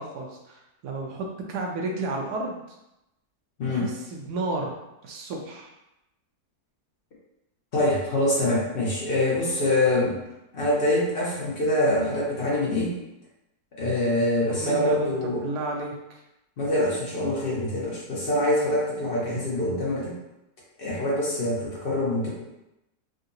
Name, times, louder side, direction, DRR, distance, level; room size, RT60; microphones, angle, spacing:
voice 1, 0.0-2.6 3.7-4.8 5.0-5.7 14.5-15.9, right 2 dB, 75° right, 1 dB, 1.2 m, -32 dB
voice 2, 3.6-3.9 7.7-10.2 10.5-12.9 13.8-15.4 16.6-20.1 20.8-22.3, left 1 dB, 45° left, -5 dB, 0.8 m, -24 dB
3.8 x 2.4 x 2.6 m, 0.90 s
omnidirectional pair, 1.8 m